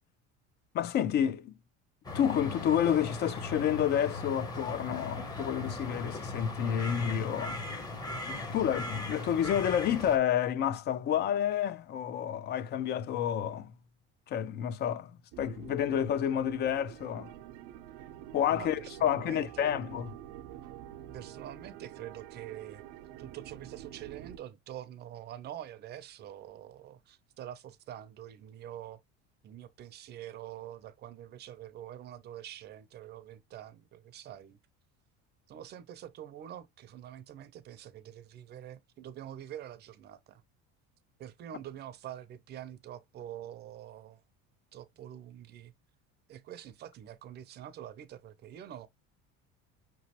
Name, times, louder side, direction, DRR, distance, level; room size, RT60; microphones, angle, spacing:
voice 1, 0.7-1.5 2.1-7.6 8.3-13.7 14.3-15.1 15.4-17.3 18.3-20.1, left 9 dB, 35° left, 0.5 m, -29 dB
sound 1, 2.0-10.2, left 2 dB, 15° left, 0.9 m, -38 dB
sound 2, 15.3-24.4, right 12 dB, 85° right, 0.7 m, -47 dB
voice 2, 18.5-19.8 21.1-22.8 23.2-29.0 29.4-34.6 35.5-40.4 41.2-44.2 44.7-45.7 46.3-48.9, right 11 dB, 35° right, 0.6 m, -46 dB
5.7 x 3.1 x 2.9 m
cardioid pair, 170°, 29 cm